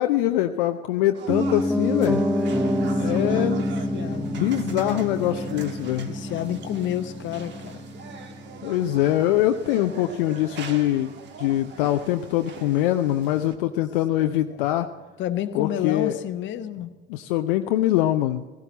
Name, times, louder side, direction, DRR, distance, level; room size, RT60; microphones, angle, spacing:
voice 1, 0.0-2.2 3.0-3.6 4.3-6.1 8.6-11.1 11.4-14.9 15.5-16.2 17.1-18.4, left 13 dB, 60° left, 8 dB, 0.7 m, -23 dB
sound 1, 1.1-13.5, right 6 dB, 35° right, 1.4 m, -42 dB
Piano, 1.3-11.3 11.6-11.7, equal, 5° right, 0.9 m, -28 dB
voice 2, 2.8-3.6 3.9-4.4 5.3-5.4 6.1-7.8 14.2-14.3 15.2-16.9, left 11 dB, 40° left, 10 dB, 1.0 m, -30 dB
16.0 x 14.5 x 4.0 m, 1.3 s
figure-of-eight pair, 70°, 30 cm